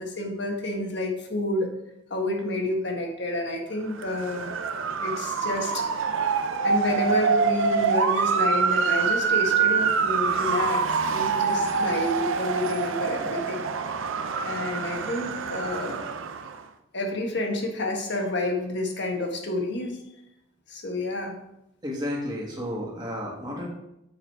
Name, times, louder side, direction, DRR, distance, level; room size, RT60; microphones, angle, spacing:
voice 1, 0.0-1.7 2.1-4.5 5.0-5.8 6.6-13.6 14.4-16.0 16.9-20.0 20.7-21.3, left 1 dB, 55° left, 2 dB, 1.4 m, -29 dB
Motor vehicle (road) / Siren, 3.9-16.6, right 5 dB, 75° right, 0.5 m, -25 dB
voice 2, 21.8-23.7, left 1 dB, 20° right, -4 dB, 1.8 m, -32 dB
7.3 x 4.9 x 4.7 m, 0.84 s
head